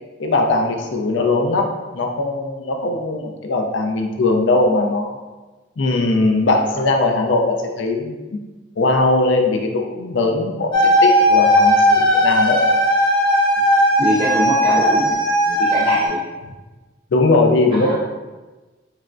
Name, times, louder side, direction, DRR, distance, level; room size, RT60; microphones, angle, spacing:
voice 1, 0.2-5.2 5.8-8.2 8.8-10.7 11.0-12.6 17.1-18.0, left 2 dB, 75° left, 3 dB, 0.4 m, -19 dB
sound 1, 10.7-16.1, equal, 25° left, 0.5 m, -16 dB
voice 2, 14.0-15.2 15.5-16.2 17.7-18.0, right 1 dB, 25° right, -6 dB, 0.5 m, -23 dB
3.3 x 3.2 x 2.5 m, 1.2 s
head